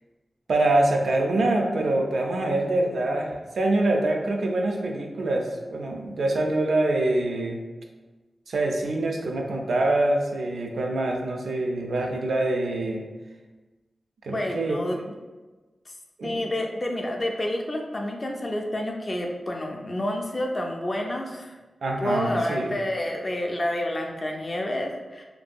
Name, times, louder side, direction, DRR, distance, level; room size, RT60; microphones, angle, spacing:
voice 1, 0.5-7.6 8.5-13.0 14.2-15.1 16.2-16.4 21.8-22.7, right 2 dB, 80° right, 1 dB, 0.4 m, -25 dB
voice 2, 14.3-15.0 15.9-16.0 16.2-21.5 22.0-25.2, left 1 dB, 30° left, 1 dB, 0.3 m, -29 dB
2.6 x 2.5 x 2.2 m, 1.2 s
wide cardioid pair, 135°, 0 cm